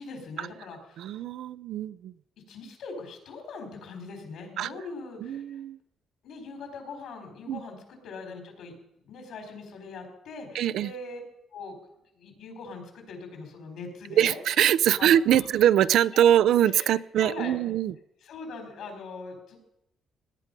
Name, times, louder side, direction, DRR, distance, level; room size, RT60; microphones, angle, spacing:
voice 1, 0.0-1.1 2.5-5.6 6.2-8.7 9.0-11.2 11.5-11.7 12.2-14.4 15.0-15.5 16.6-17.6 18.2-19.6, left 3 dB, 75° left, 4 dB, 4.1 m, -41 dB
voice 2, 1.0-2.1 4.6-4.7 5.2-5.8 7.5-7.6 10.5-10.9 14.2-17.9, right 11 dB, 80° right, 17 dB, 0.4 m, -23 dB
18.5 x 9.9 x 5.3 m, 0.83 s
cardioid pair, 90°, 0 cm